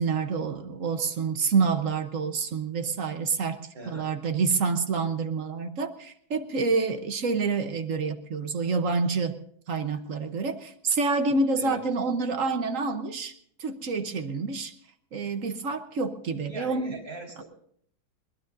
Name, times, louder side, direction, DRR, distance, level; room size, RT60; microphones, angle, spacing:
voice 1, 0.0-9.4 9.7-13.3 13.6-14.7 15.1-17.0, right 4 dB, 55° right, 8 dB, 1.3 m, -28 dB
voice 2, 3.7-4.1 11.6-11.8 16.5-17.4, right 2 dB, 35° right, 1 dB, 4.5 m, -40 dB
21.5 x 19.5 x 2.6 m, 0.64 s
omnidirectional pair, 1.7 m